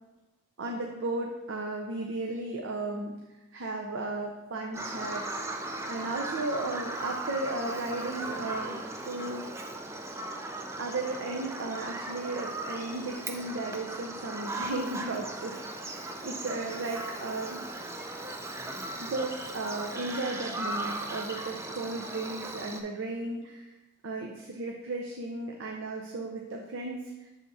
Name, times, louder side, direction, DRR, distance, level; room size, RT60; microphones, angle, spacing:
voice 1, 0.6-3.1 3.5-9.4 10.8-17.6 19.0-23.7 24.0-27.3, right 2 dB, 70° right, 1 dB, 0.6 m, -35 dB
Bird vocalization bird call bird song, 4.7-22.8, right 2 dB, 15° right, 0.3 m, -37 dB
7.3 x 3.5 x 4.1 m, 1.1 s
head